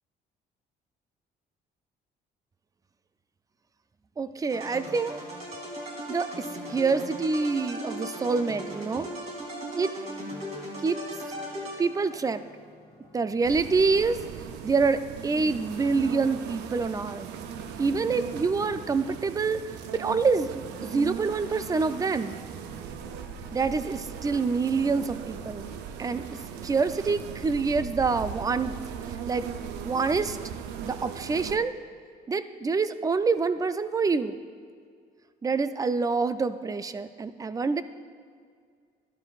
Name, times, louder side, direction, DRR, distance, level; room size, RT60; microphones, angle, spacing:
voice 1, 4.2-5.2 6.1-6.4 6.7-9.1 9.7-9.9 10.8-11.0 11.8-12.4 13.1-14.2 14.6-17.3 17.8-19.6 19.9-22.4 23.5-25.7 26.0-26.4 26.6-28.8 29.3-29.5 29.8-30.4 30.8-31.7 32.3-34.4 35.4-37.8, right 4 dB, 20° right, 12 dB, 0.4 m, -26 dB
sound 1, 4.5-12.2, equal, 45° right, 2.7 m, -38 dB
sound 2, 11.0-30.2, equal, 5° left, 1.6 m, -54 dB
sound 3, 13.4-31.6, right 8 dB, 85° right, 0.6 m, -39 dB
13.0 x 12.0 x 2.4 m, 2.1 s
cardioid pair, 110°, 17 cm